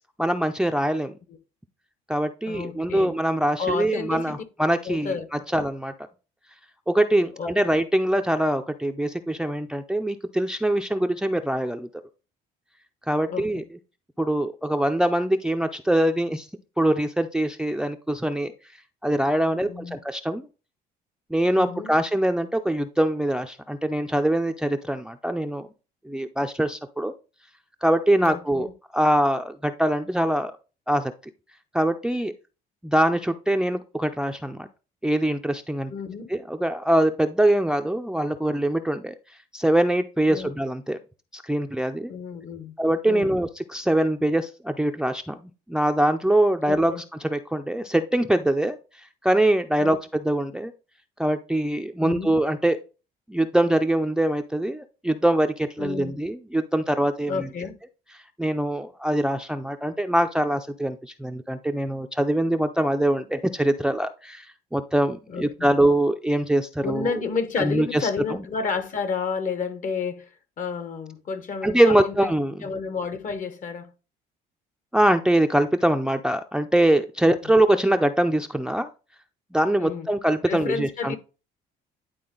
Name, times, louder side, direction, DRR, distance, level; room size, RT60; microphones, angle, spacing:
voice 1, 0.2-1.1 2.1-5.1 5.5-5.9 6.9-11.9 13.1-13.6 14.2-16.5 16.8-18.5 19.0-20.4 21.3-25.7 26.0-27.1 27.8-28.7 28.9-30.5 30.9-31.1 31.7-32.3 32.8-34.7 35.0-35.9 36.3-39.1 39.5-41.0 41.3-42.1 42.8-45.3 45.7-46.9 47.2-48.8 49.2-50.7 51.2-52.8 53.3-57.5 58.4-64.5 64.7-67.1 67.6-68.4 71.6-72.7 74.9-78.9 79.5-81.1, right 1 dB, 5° right, 0.5 m, -23 dB
voice 2, 2.5-3.1 3.6-4.4 4.8-5.7 7.4-7.5 13.3-13.5 19.6-20.0 21.6-21.9 28.2-28.7 35.9-36.3 40.3-40.5 42.1-42.8 43.0-43.3 46.6-47.0 49.8-49.9 52.0-52.4 55.8-56.2 57.3-57.7 65.3-65.7 66.8-70.3 70.6-72.3 72.6-73.9 77.4-77.5 79.8-80.1 80.5-81.2, left 5 dB, 50° left, 1.2 m, -31 dB
10.5 x 3.8 x 3.8 m
cardioid pair, 110°, 17 cm